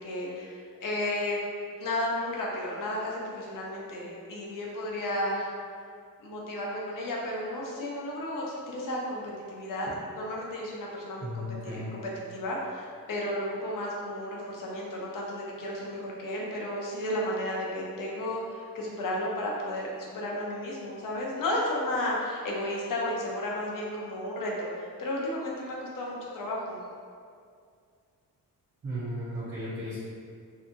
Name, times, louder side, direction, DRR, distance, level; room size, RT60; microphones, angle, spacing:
voice 1, 0.0-1.4 1.8-5.5 6.2-9.2 9.5-9.9 10.1-12.0 12.3-26.8, left 1 dB, 65° left, -3 dB, 0.6 m, -33 dB
voice 2, 11.2-11.9 28.8-30.0, equal, 40° right, -13 dB, 0.7 m, -35 dB
2.7 x 2.5 x 2.5 m, 2.2 s
wide cardioid pair, 170°, 35 cm